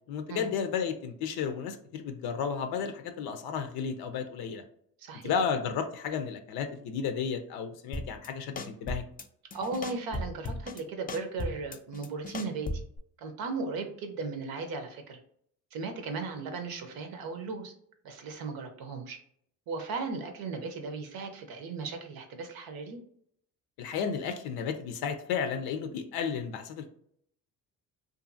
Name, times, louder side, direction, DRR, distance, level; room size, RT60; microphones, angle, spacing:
voice 1, 0.1-4.6 5.2-9.0 23.8-26.9, left 6 dB, 80° left, 7 dB, 0.5 m, -33 dB
voice 2, 5.0-5.4 9.5-12.8 13.2-15.2 15.7-17.7 18.0-19.2 19.7-23.0, right 4 dB, 75° right, 6 dB, 0.7 m, -36 dB
sound 1, 7.9-8.3 8.6-9.2 9.5-10.8 11.1-13.0, left 1 dB, 25° left, 0.4 m, -36 dB
2.6 x 2.5 x 2.5 m, 0.67 s
supercardioid pair, 75°, 36 cm